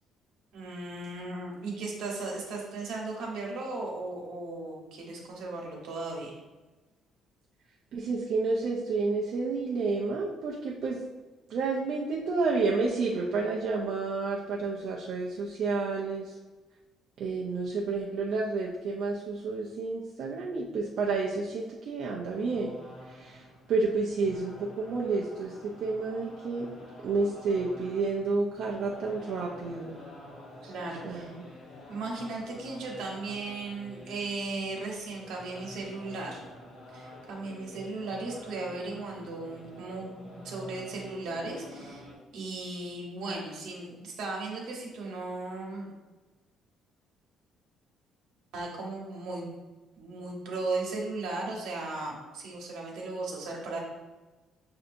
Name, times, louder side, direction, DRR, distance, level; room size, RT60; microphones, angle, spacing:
voice 1, 0.5-6.3 30.6-31.3 31.9-36.4 36.9-42.1 42.3-45.9 48.5-49.5 50.0-53.8, right 3 dB, 70° right, -2 dB, 1.1 m, -36 dB
voice 2, 7.9-11.0 11.5-16.4 17.2-22.8 23.1-23.4 23.7-25.5 25.8-26.7 27.0-30.0 31.0-31.4, right 3 dB, 55° right, -3 dB, 0.5 m, -30 dB
sound 1, 22.3-42.1, left 1 dB, 50° left, 1.0 m, -48 dB
6.5 x 2.7 x 2.6 m, 1.2 s
cardioid pair, 165°, 0 cm